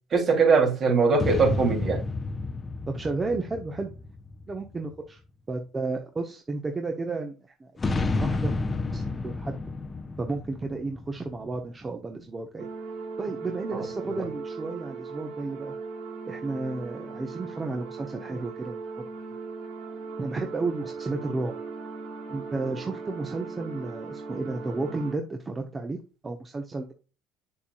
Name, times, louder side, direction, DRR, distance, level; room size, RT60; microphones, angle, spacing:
voice 1, 0.1-2.0 13.7-13.8, right 4 dB, 50° right, 3.2 m, -21 dB
sound 1, 1.2-4.9 7.8-11.6, left 3 dB, 30° left, 0.9 m, -31 dB
voice 2, 2.9-3.9 4.5-5.2 5.5-7.7 8.1-8.5 8.9-9.5 10.2-12.7 13.2-15.8 16.3-18.8 20.2-21.5 22.3-26.9, right 3 dB, 25° right, 1.3 m, -32 dB
sound 2, 12.6-25.1, right 4 dB, 70° right, 2.3 m, -38 dB
7.1 x 6.9 x 2.4 m
supercardioid pair, 75°, 0 cm